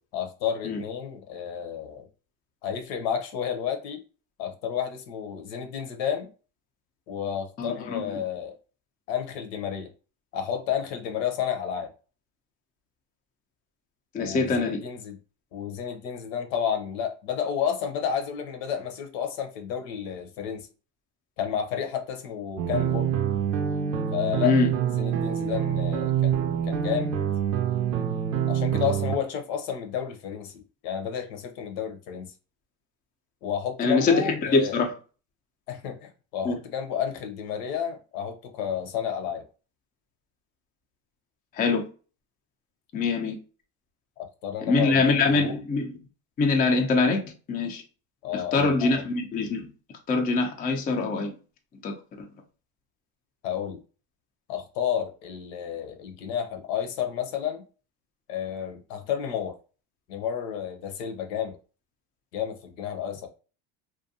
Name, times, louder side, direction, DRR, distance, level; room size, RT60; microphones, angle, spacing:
voice 1, 0.1-2.1 2.6-4.0 4.4-6.3 7.1-8.6 9.1-9.9 10.3-11.9 14.1-15.2 15.5-20.7 21.4-23.2 24.1-24.5 24.9-27.1 28.5-32.3 33.4-34.8 35.7-39.4 44.2-45.6 48.2-49.1 53.4-53.8 54.5-57.6 58.3-59.6 60.1-61.6 62.3-63.3, left 8 dB, 75° left, 0.8 m, -31 dB
voice 2, 7.6-8.0 14.1-14.8 24.4-24.7 33.8-34.9 36.4-36.6 41.6-41.8 42.9-43.4 44.7-45.9 46.4-47.8 48.3-49.6 50.1-51.3 51.8-51.9, left 4 dB, 20° left, 0.4 m, -24 dB
Pixel Piano Melody loop, 22.6-29.2, right 9 dB, 90° right, 0.6 m, -26 dB
2.5 x 2.2 x 2.6 m
supercardioid pair, 105°, 49 cm